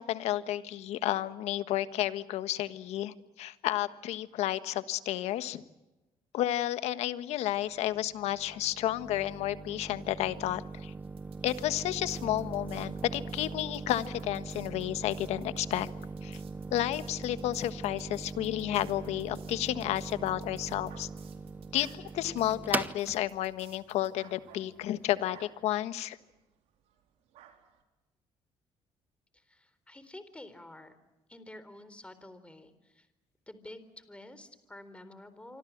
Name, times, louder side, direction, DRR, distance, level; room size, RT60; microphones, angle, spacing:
voice 1, 0.0-5.6 6.3-10.9 11.4-15.9 16.2-16.4 16.7-21.1 21.7-26.2, left 13 dB, 80° left, 12 dB, 1.5 m, -32 dB
sound 1, 7.6-25.3, right 3 dB, 15° right, 1.4 m, -41 dB
sound 2, 11.0-24.1, right 9 dB, 60° right, 4.1 m, -59 dB
sound 3, 20.9-26.4 26.8-27.0 27.3-27.8, right 10 dB, 80° right, 4.2 m, -58 dB
voice 2, 29.3-31.0 31.3-33.1 33.5-35.6, left 1 dB, 10° left, 12 dB, 4.0 m, -49 dB
26.5 x 25.0 x 7.4 m, 1.0 s
supercardioid pair, 80°, 11 cm